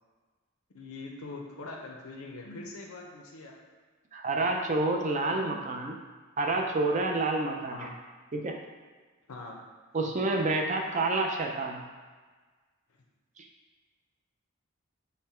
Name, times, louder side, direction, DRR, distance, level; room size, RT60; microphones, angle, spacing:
voice 1, 0.7-3.6 5.4-5.6 7.7-7.9 9.3-9.6, left 3 dB, 90° left, 0 dB, 0.6 m, -43 dB
voice 2, 4.1-5.9 6.4-7.9 8.3-8.6 9.9-11.8 13.4-13.5, right 2 dB, 35° right, 2 dB, 0.4 m, -28 dB
5.4 x 2.2 x 4.3 m, 1.4 s
head